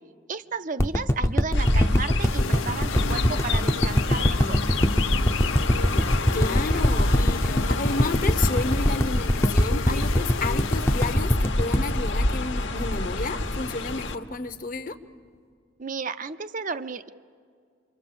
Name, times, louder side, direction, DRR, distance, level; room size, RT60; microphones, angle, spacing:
voice 1, 0.3-4.6 15.8-17.1, right 4 dB, 40° right, 11 dB, 0.6 m, -33 dB
sound 1, 0.8-13.1 13.5-13.6, equal, 15° left, 0.6 m, -22 dB
Chirp tweet, 1.5-14.2, left 2 dB, 60° left, 1.2 m, -28 dB
sound 2, 2.2-11.9, left 6 dB, 85° left, 0.6 m, -36 dB
voice 2, 6.0-15.0, left 3 dB, 40° left, 11 dB, 0.9 m, -31 dB
27.5 x 23.5 x 7.7 m, 2.1 s
head